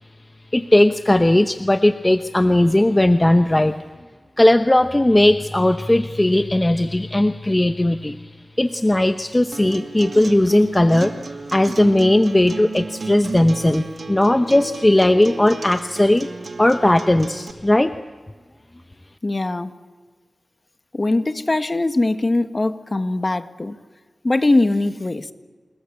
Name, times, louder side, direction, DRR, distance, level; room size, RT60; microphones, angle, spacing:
voice 1, 0.5-3.8 4.4-8.3 8.6-16.3 16.6-17.9, left 1 dB, 20° left, 8 dB, 0.9 m, -17 dB
Acoustic guitar, 9.5-17.5, right 3 dB, 60° right, 2.3 m, -33 dB
voice 2, 19.2-19.7 20.9-23.8 24.2-25.3, left 2 dB, 35° left, 9 dB, 1.6 m, -21 dB
29.0 x 21.0 x 8.6 m, 1.5 s
wide cardioid pair, 70°, 0 cm